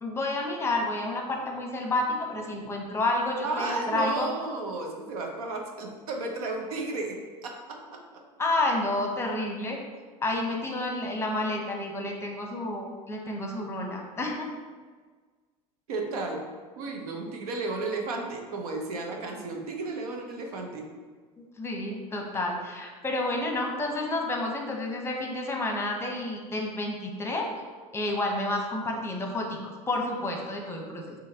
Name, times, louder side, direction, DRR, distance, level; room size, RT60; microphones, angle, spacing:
voice 1, 0.0-4.3 8.4-9.8 10.2-14.5 21.4-27.5 27.9-31.2, left 2 dB, 15° left, 1 dB, 0.9 m, -30 dB
voice 2, 3.4-8.0 15.9-16.4 16.8-20.8, right 3 dB, 80° right, 2 dB, 0.9 m, -33 dB
6.3 x 2.8 x 2.9 m, 1.5 s
hypercardioid pair, 95°, 19 cm